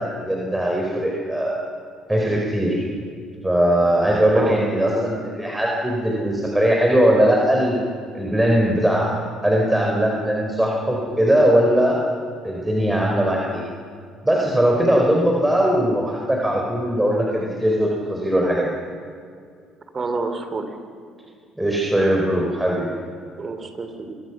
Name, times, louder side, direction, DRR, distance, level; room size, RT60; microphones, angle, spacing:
voice 1, 0.0-1.6 2.1-2.8 3.4-7.8 8.1-9.1 9.4-12.0 12.4-13.6 14.2-18.7 21.6-22.9, right 1 dB, 10° right, -1 dB, 4.6 m, -20 dB
voice 2, 4.3-5.2 15.6-15.7 19.9-20.7 23.4-24.1, right 3 dB, 35° right, 7 dB, 3.4 m, -29 dB
26.0 x 20.5 x 6.1 m, 2.2 s
hypercardioid pair, 55°, 0 cm